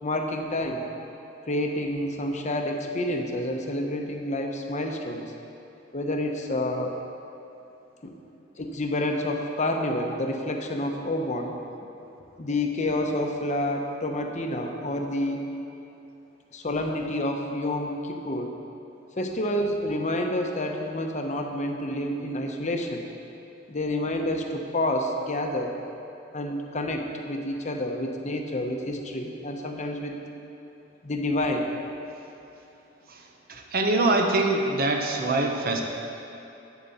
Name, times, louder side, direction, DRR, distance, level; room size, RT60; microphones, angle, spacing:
voice 1, 0.0-0.8 1.4-5.2 5.9-6.9 8.6-11.5 12.4-15.4 16.5-18.5 19.2-23.0 23.7-25.7 26.3-30.1 31.0-31.7, left 1 dB, 40° left, 3 dB, 0.9 m, -28 dB
voice 2, 33.5-35.8, right 2 dB, 50° right, 3 dB, 1.0 m, -24 dB
11.0 x 8.3 x 4.2 m, 2.9 s
head